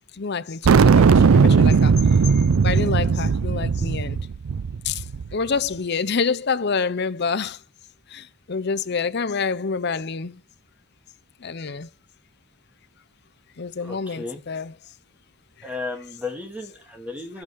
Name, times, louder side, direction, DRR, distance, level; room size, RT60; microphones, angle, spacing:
voice 1, 0.2-2.2 2.6-4.2 4.8-5.0 5.3-7.6 8.1-10.4 11.4-11.9 13.6-14.8, left 5 dB, 45° left, 0.6 m, -27 dB
sound 1, 0.6-5.3, right 5 dB, 70° right, 0.4 m, -17 dB
voice 2, 13.8-14.4 15.6-17.4, left 3 dB, 5° right, 2.6 m, -34 dB
12.5 x 8.0 x 3.5 m
head